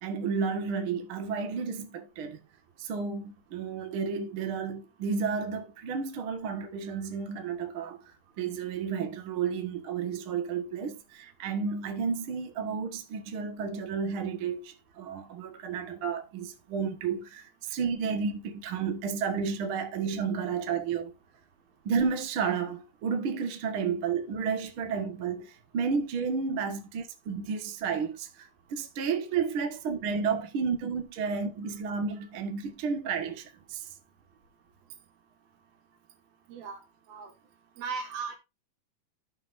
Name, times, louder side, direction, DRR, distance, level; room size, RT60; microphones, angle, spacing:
voice 1, 0.0-2.4 2.8-8.0 8.4-21.1 21.8-33.4 33.7-33.9, right 6 dB, 50° right, 1.6 m, -32 dB
voice 2, 36.5-36.8 37.1-37.3 37.8-38.4, right 5 dB, 70° right, 3.6 m, -36 dB
13.5 x 6.4 x 2.6 m
omnidirectional pair, 4.4 m